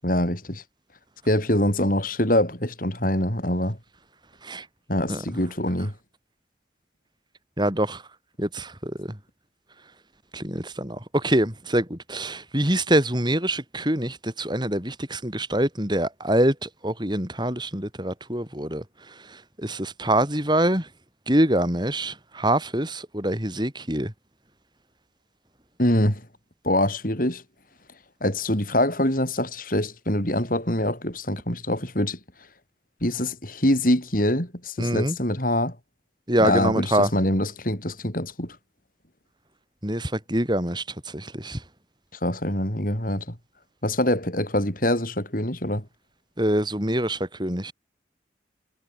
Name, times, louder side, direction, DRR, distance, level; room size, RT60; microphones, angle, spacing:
voice 1, 0.0-0.6 1.3-3.8 4.9-5.9 25.8-26.2 26.6-27.4 28.2-32.2 33.0-35.8 36.4-38.6 42.2-43.4 43.8-45.8, left 1 dB, 50° left, 7.6 m, -24 dB
voice 2, 7.6-8.0 8.4-9.1 10.3-18.8 19.6-20.9 21.3-24.1 34.8-35.2 36.3-37.1 39.8-40.8 41.1-41.6 46.4-47.7, right 1 dB, 25° right, 7.0 m, -25 dB
head